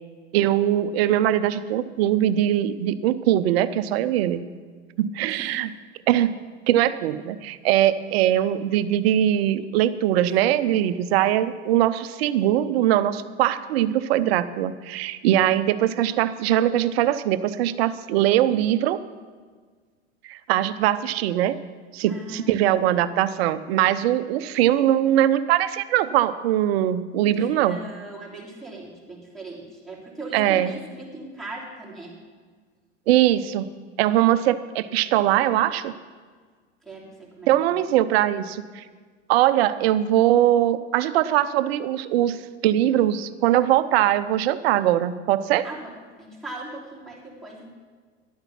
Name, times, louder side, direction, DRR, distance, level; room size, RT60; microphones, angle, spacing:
voice 1, 0.3-4.4 5.0-5.7 6.1-6.4 6.7-19.0 20.2-21.6 21.9-27.8 30.3-30.7 33.1-33.7 34.0-35.9 37.5-38.8 39.3-42.4 42.6-45.7, right 12 dB, 60° right, 13 dB, 0.7 m, -21 dB
voice 2, 22.1-22.6 27.4-32.2 36.8-37.8 45.6-45.9 46.2-47.7, right 2 dB, ahead, -3 dB, 3.2 m, -39 dB
12.0 x 8.9 x 5.8 m, 1.5 s
hypercardioid pair, 90°, 35 cm